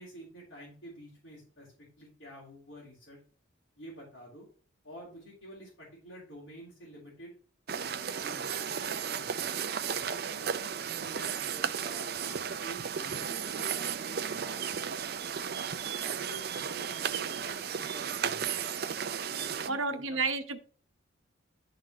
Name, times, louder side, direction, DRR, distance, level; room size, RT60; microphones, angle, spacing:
voice 1, 0.0-3.2 3.8-4.5 4.8-7.3 7.7-9.5 10.1-15.2 15.5-18.6 19.3-20.2, equal, 65° left, -6 dB, 3.6 m, -49 dB
sound 1, 7.7-19.7, right 7 dB, 50° right, 0.5 m, -34 dB
voice 2, 19.7-20.6, right 4 dB, 90° right, 7 dB, 1.0 m, -31 dB
11.5 x 4.0 x 3.0 m, 0.42 s
head